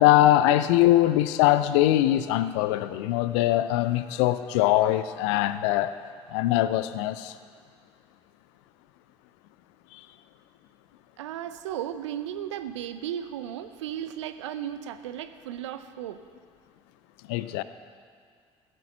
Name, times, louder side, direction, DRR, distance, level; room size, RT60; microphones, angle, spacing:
voice 1, 0.0-5.9 6.3-7.3 9.9-10.0 17.3-17.6, left 14 dB, 70° left, 13 dB, 0.5 m, -22 dB
voice 2, 11.2-16.2, right 10 dB, 80° right, 11 dB, 0.6 m, -35 dB
15.5 x 6.9 x 7.3 m, 2.1 s
hypercardioid pair, 55°, 15 cm